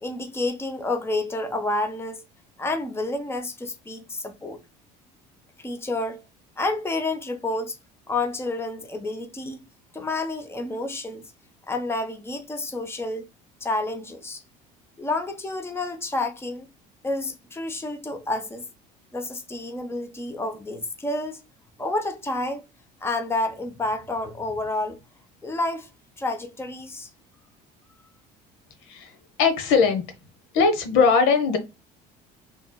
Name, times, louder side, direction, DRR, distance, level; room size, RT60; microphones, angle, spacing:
voice 1, 0.0-2.2 2.6-4.6 5.6-6.2 6.6-7.8 8.1-9.6 9.9-11.2 11.7-13.3 13.6-14.4 15.0-16.7 17.0-18.6 19.1-21.4 21.8-22.6 23.0-25.0 25.4-25.9 26.2-27.1, left 2 dB, 10° left, 0.9 m, -29 dB
voice 2, 29.4-30.0 30.5-31.6, left 5 dB, 70° left, 1.1 m, -19 dB
5.7 x 3.0 x 2.3 m
hypercardioid pair, 75°, 21 cm